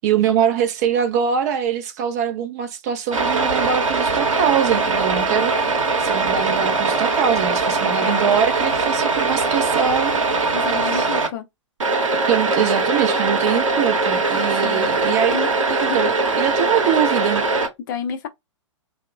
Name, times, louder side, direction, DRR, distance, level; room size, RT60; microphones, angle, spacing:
voice 1, 0.0-5.7 6.0-10.6 10.9-11.1 12.3-15.4 15.7-17.4, right 8 dB, 30° right, 0.4 m, -23 dB
sound 1, 3.1-11.3 11.8-17.7, right 3 dB, 75° right, 0.8 m, -21 dB
voice 2, 8.0-8.4 10.5-11.4 14.6-14.9 15.3-15.5 15.9-16.1 17.9-18.3, left 7 dB, 40° left, 0.5 m, -30 dB
2.9 x 2.0 x 2.2 m
figure-of-eight pair, 115°, 17 cm